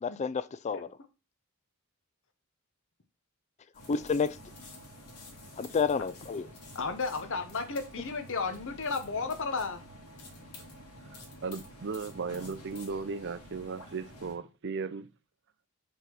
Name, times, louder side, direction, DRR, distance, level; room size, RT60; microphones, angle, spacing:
voice 1, 0.0-0.9 3.9-4.4 5.6-6.5, left 5 dB, 30° left, 0.3 m, -30 dB
taking-off-potatoskin, 3.7-14.4, left 1 dB, 80° left, 2.2 m, -49 dB
voice 2, 6.7-9.8, left 4 dB, 60° left, 1.1 m, -33 dB
voice 3, 11.1-15.1, right 4 dB, 55° right, 0.6 m, -36 dB
5.6 x 3.8 x 5.9 m
head